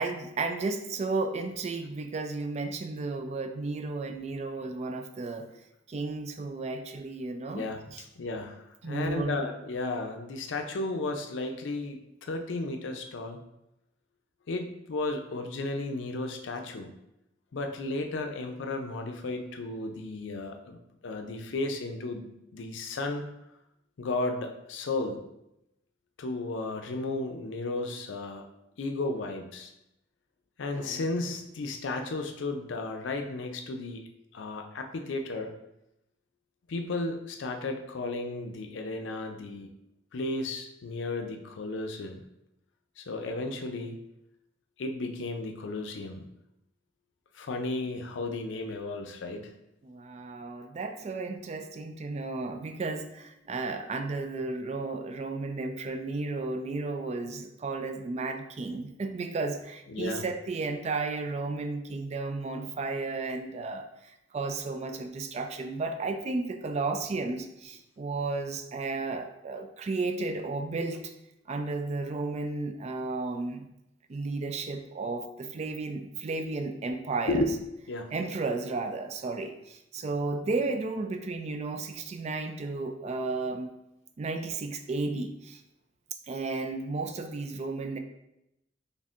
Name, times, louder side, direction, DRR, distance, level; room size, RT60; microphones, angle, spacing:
voice 1, 0.0-5.5 5.9-8.0 8.8-9.4 49.8-71.1 71.5-73.7 74.1-77.5 78.1-83.7 84.2-85.6 86.3-88.0, right 3 dB, 35° right, 6 dB, 0.3 m, -33 dB
voice 2, 8.2-13.4 14.5-16.9 17.5-20.8 21.0-23.2 24.0-25.2 26.2-28.4 28.8-29.7 30.6-34.0 34.3-35.5 36.7-39.7 40.1-42.2 43.0-44.0 44.8-46.3 47.3-49.5 59.9-60.2 77.3-77.5 77.9-78.1, left 2 dB, 85° left, 5 dB, 0.5 m, -34 dB
4.2 x 3.4 x 2.5 m, 0.85 s
head